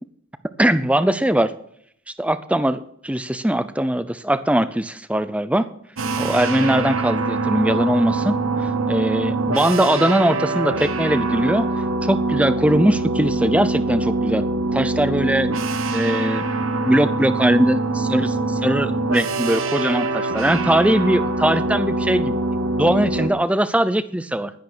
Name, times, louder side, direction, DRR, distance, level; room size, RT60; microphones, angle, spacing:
voice 1, 0.6-1.5 2.2-5.7 6.2-11.7 12.0-14.4 14.7-15.5 15.9-16.5 16.8-22.4 22.8-24.5, right 1 dB, 5° right, 13 dB, 0.5 m, -20 dB
sound 1, 6.0-23.3, right 2 dB, 75° right, 1.3 m, -24 dB
10.5 x 10.5 x 6.2 m, 0.69 s
head